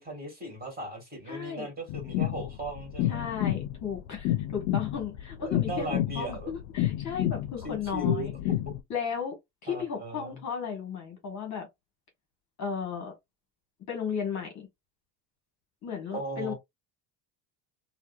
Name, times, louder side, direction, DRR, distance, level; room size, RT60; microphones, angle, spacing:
voice 1, 0.0-3.3 5.4-6.5 7.6-8.3 9.7-10.4 16.1-16.5, right 2 dB, 20° right, 1.7 m, -37 dB
voice 2, 1.3-1.7 3.1-8.3 8.9-9.4 9.6-11.7 12.6-13.1 13.9-14.7 15.8-16.5, left 6 dB, 35° left, 1.1 m, -35 dB
sound 1, 1.9-8.8, left 14 dB, 75° left, 0.5 m, -30 dB
3.5 x 2.1 x 2.3 m
cardioid pair, 125°, 48 cm